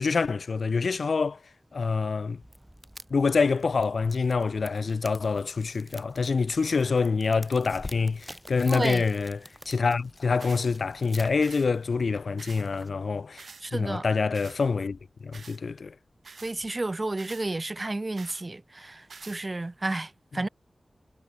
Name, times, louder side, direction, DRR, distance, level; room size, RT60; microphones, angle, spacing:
voice 1, 0.0-1.4 1.7-2.4 3.1-13.4 13.7-15.9 20.3-20.4, left 4 dB, 75° left, 0.6 m, -26 dB
sound 1, 2.4-13.2, right 1 dB, 10° right, 3.2 m, -49 dB
Water tap faucet / Sink (filling or washing), 7.7-16.7, left 3 dB, 50° left, 3.0 m, -50 dB
voice 2, 8.7-9.0 13.6-14.0 16.4-20.5, right 2 dB, 35° right, 0.6 m, -31 dB
sound 2, 10.4-10.7 11.4-11.7 12.4-12.7 13.4-13.6 14.3-14.6 15.3-15.6 16.2-16.5 17.2-17.5 18.2-18.4 19.1-19.4, right 4 dB, 75° right, 4.4 m, -46 dB
wide cardioid pair, 60°, 0 cm